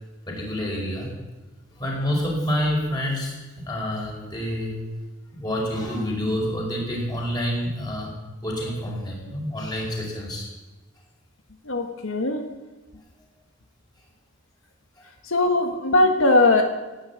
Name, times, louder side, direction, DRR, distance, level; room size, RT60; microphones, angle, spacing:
voice 1, 0.3-1.1 1.8-4.8 5.4-8.1 8.4-10.5, equal, 20° left, -2 dB, 5.1 m, -28 dB
voice 2, 11.6-12.5 15.2-16.6, left 2 dB, 85° left, 5 dB, 1.6 m, -20 dB
17.0 x 9.8 x 8.4 m, 1.2 s
head